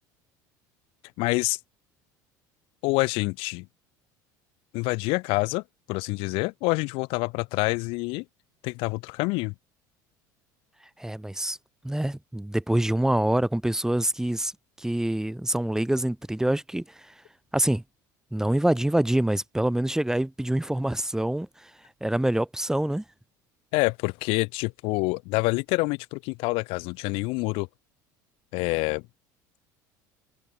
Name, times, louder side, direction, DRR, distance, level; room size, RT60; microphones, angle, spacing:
voice 1, 1.2-1.6 2.8-3.7 4.7-5.6 5.9-8.2 8.6-9.5 23.7-27.7 28.5-29.0, left 27 dB, 65° left, 3.8 m, -27 dB
voice 2, 11.0-11.6 11.8-14.5 14.8-17.1 17.5-17.8 18.3-21.7 22.0-23.0, right 1 dB, 5° right, 2.2 m, -26 dB
hypercardioid pair, 75°, 10 cm